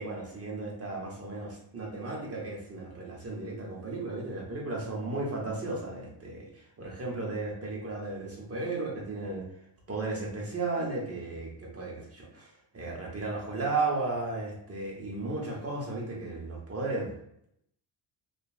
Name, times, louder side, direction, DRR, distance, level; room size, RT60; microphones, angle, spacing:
voice 1, 0.0-9.5 9.9-17.1, right 3 dB, 30° right, -2 dB, 1.0 m, -35 dB
2.9 x 2.5 x 2.4 m, 0.74 s
cardioid pair, 85°, 49 cm